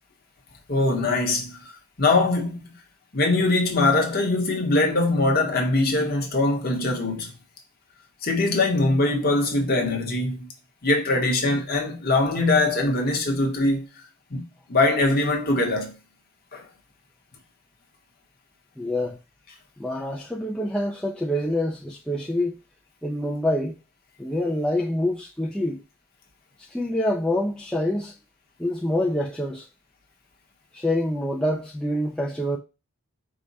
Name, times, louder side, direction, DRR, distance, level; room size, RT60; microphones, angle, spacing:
voice 1, 0.7-1.6 2.0-2.8 3.1-7.3 8.2-10.4 10.8-13.8 14.3-15.9 16.5-16.6, left 2 dB, 45° left, 0.9 m, -22 dB
voice 2, 18.8-19.2 19.8-22.6 23.0-23.8 24.2-25.8 26.7-28.1 28.6-29.7 30.7-32.6, left 1 dB, 5° left, 0.3 m, -26 dB
4.8 x 2.1 x 4.0 m
head